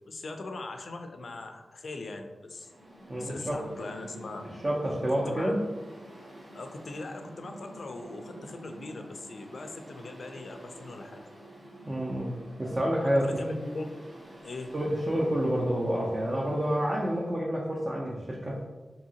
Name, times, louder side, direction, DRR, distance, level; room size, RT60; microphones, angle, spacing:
voice 1, 0.0-2.7 3.2-4.4 5.3-5.5 6.5-11.2 13.0-13.9 14.4-14.7, left 2 dB, 65° left, 5 dB, 0.3 m, -40 dB
Mechanical fan, 2.5-17.3, right 1 dB, 50° right, 0.8 m, -48 dB
voice 2, 3.1-3.6 4.6-5.6 11.9-12.3 12.6-13.4 14.7-18.6, equal, 30° right, -4 dB, 0.4 m, -28 dB
2.7 x 2.7 x 2.7 m, 1.2 s
wide cardioid pair, 90°, 0 cm